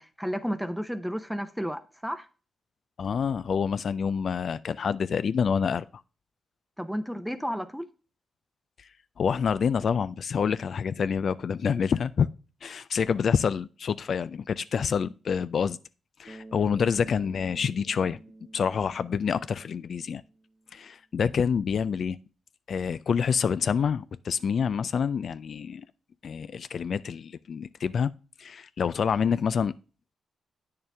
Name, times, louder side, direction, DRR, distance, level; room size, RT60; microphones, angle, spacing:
voice 1, 0.0-2.3 6.8-7.9, equal, ahead, 0.7 m, -32 dB
voice 2, 3.0-5.8 8.8-8.9 9.2-12.3 12.6-15.8 16.2-18.2 18.5-20.2 20.7-22.2 22.7-25.9 26.2-28.1 28.4-29.7, left 6 dB, 60° left, 0.3 m, -27 dB
Bass guitar, 16.3-20.6, right 2 dB, 35° right, 0.9 m, -49 dB
8.7 x 6.6 x 3.3 m
cardioid pair, 75°, 0 cm